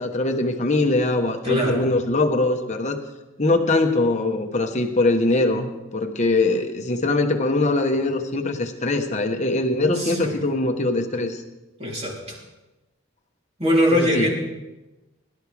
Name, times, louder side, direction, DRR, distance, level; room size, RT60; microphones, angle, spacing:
voice 1, 0.0-3.0 3.4-11.4 14.0-14.3, left 2 dB, 30° left, 4 dB, 1.2 m, -22 dB
voice 2, 1.4-1.9 9.8-10.5 11.8-12.4 13.6-14.4, equal, 30° right, -3 dB, 3.3 m, -22 dB
22.0 x 12.0 x 3.5 m, 1.1 s
head